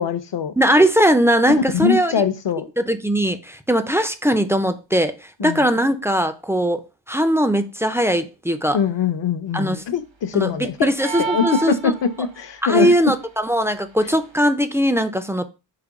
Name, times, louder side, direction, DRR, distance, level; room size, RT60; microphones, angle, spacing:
voice 1, 0.0-0.5 1.7-2.7 5.4-5.7 8.7-10.9 11.2-13.0, left 7 dB, 65° left, 0.7 m, -22 dB
voice 2, 0.6-2.1 2.8-6.8 7.1-8.8 9.5-9.8 10.3-11.9 12.6-15.4, equal, 5° right, 0.3 m, -19 dB
sound 1, 11.0-12.4, right 5 dB, 70° right, 1.1 m, -28 dB
5.0 x 2.2 x 4.7 m
wide cardioid pair, 85°, 46 cm